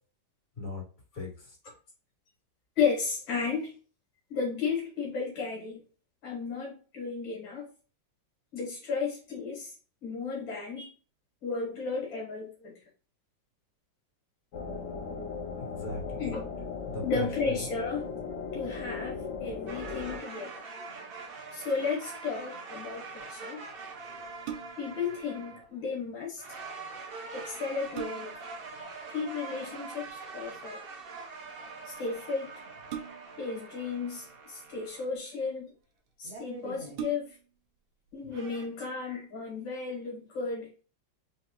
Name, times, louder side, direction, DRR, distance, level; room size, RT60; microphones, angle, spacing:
voice 1, 1.1-1.6 15.6-16.3 16.9-17.7, left 2 dB, 45° left, -2 dB, 2.6 m, -38 dB
voice 2, 2.8-3.7 4.3-5.8 6.2-7.7 8.5-9.8 10.0-10.9 11.4-12.7 16.2-16.4 17.0-18.0 18.5-20.5 21.5-23.6 24.8-26.6 27.3-28.5 29.1-30.8 31.9-32.5 33.4-35.7 36.2-37.4 38.1-40.7, left 5 dB, 85° left, -2 dB, 2.3 m, -34 dB
sound 1, 14.5-20.2, left 5 dB, 60° left, 1.1 m, -37 dB
sound 2, 19.7-26.1 26.4-35.1 36.2-37.0 38.2-38.7, right 4 dB, 55° right, 0.6 m, -44 dB
sound 3, 24.4-25.0 27.0-27.1 27.6-28.5 30.1-30.4 32.9-33.5 34.5-35.2 35.9-36.0 36.3-36.4 36.9-37.6 38.1-38.2, right 8 dB, 90° right, 1.5 m, -41 dB
4.5 x 2.8 x 2.9 m, 0.37 s
omnidirectional pair, 2.1 m